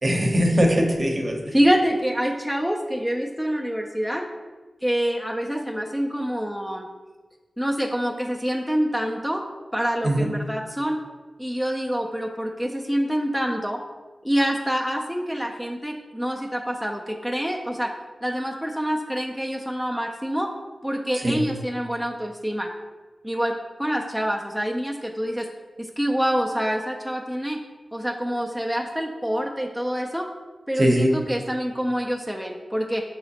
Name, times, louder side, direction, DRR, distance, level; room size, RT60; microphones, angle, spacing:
voice 1, 0.0-1.5 10.0-10.3 21.2-21.4 30.8-31.1, equal, 45° right, 1 dB, 0.7 m, -21 dB
voice 2, 1.5-4.3 4.8-6.9 7.6-9.4 9.7-11.0 11.4-13.8 14.2-17.9 18.2-20.5 20.8-22.7 23.2-23.5 23.8-25.5 25.8-27.6 27.9-30.3 30.7-33.0, equal, ahead, 0 dB, 0.3 m, -26 dB
4.1 x 3.8 x 2.8 m, 1.3 s
cardioid pair, 55°, 0 cm